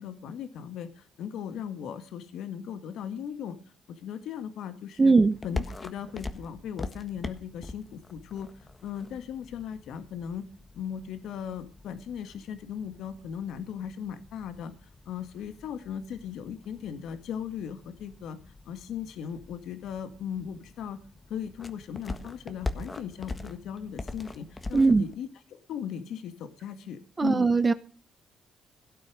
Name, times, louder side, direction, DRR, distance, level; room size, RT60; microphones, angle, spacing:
voice 1, 0.0-3.6 3.9-5.2 5.4-8.5 8.8-10.5 10.7-14.7 15.1-18.4 18.7-21.0 21.3-27.5, left 8 dB, 80° left, 9 dB, 1.7 m, -37 dB
voice 2, 5.0-5.4 24.7-25.0 27.2-27.7, right 4 dB, 25° right, 13 dB, 0.8 m, -20 dB
sound 1, 5.3-25.1, left 2 dB, 25° left, 1.5 m, -42 dB
17.0 x 8.8 x 6.3 m, 0.38 s
cardioid pair, 90°, 0 cm